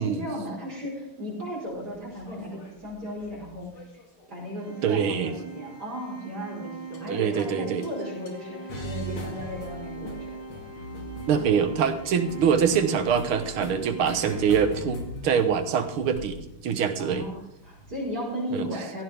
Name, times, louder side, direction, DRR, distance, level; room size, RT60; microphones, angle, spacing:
voice 1, 0.0-3.7 4.3-10.7 11.4-11.8 17.0-19.0, equal, 50° right, -4 dB, 5.3 m, -35 dB
sound 1, 1.7-4.3 5.2-5.7 6.9-7.1 7.4-7.5 7.8-7.9 8.3-18.0, equal, 80° left, 3.3 m, -41 dB
Organ, 4.6-15.3, right 6 dB, 25° right, 2.9 m, -42 dB
voice 2, 4.8-5.3 7.1-7.8 11.3-17.3 18.5-18.7, right 7 dB, 80° right, 9 dB, 2.1 m, -24 dB
Wind instrument woodwind instrument, 7.7-11.7, left 7 dB, 60° left, 4.9 m, -46 dB
16.5 x 16.0 x 3.6 m, 0.80 s
omnidirectional pair, 2.3 m